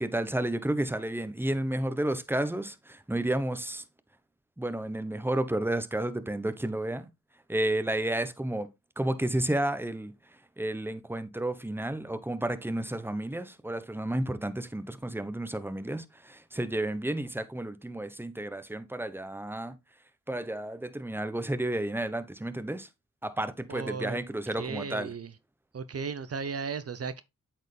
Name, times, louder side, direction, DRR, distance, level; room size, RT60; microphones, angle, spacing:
voice 1, 0.0-3.8 4.6-7.1 7.5-8.7 9.0-10.1 10.6-19.8 20.3-22.9 23.2-25.1, right 1 dB, 5° right, 1.0 m, -31 dB
voice 2, 23.7-24.2 24.6-25.3 25.7-27.2, right 5 dB, 45° right, 0.7 m, -35 dB
8.0 x 4.6 x 3.3 m
cardioid pair, 55°, 34 cm